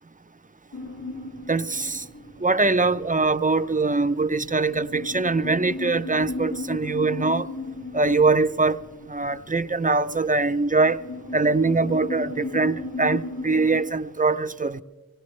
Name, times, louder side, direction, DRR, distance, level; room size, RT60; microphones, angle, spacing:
sound 1, 0.7-13.8, left 2 dB, 75° left, 2.7 m, -36 dB
voice 1, 1.5-2.0 2.4-7.5 7.9-8.8 9.1-11.0 11.3-14.8, right 3 dB, 20° right, 0.5 m, -22 dB
25.0 x 18.0 x 3.2 m
wide cardioid pair, 45°, 37 cm